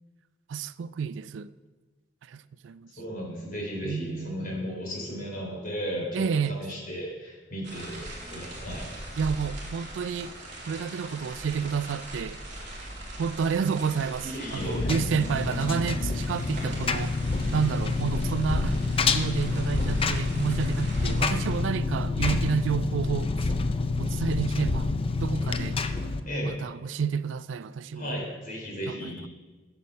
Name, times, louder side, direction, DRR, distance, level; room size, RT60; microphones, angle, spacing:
voice 1, 0.5-1.5 2.3-2.9 3.8-4.6 6.1-6.6 9.2-10.3 10.7-12.4 13.2-17.2 17.5-23.3 24.0-24.9 25.2-25.8 26.4-28.2 28.9-29.3, right 6 dB, 80° right, 0.4 m, -30 dB
voice 2, 3.0-8.0 8.3-8.9 14.2-14.9 26.3-26.5 28.0-29.3, equal, 50° left, 3.5 m, -35 dB
sound 1, 7.6-21.6, right 1 dB, 40° right, 2.6 m, -41 dB
Engine, 14.6-26.2, left 3 dB, 30° left, 0.5 m, -27 dB
8.4 x 7.0 x 6.5 m
head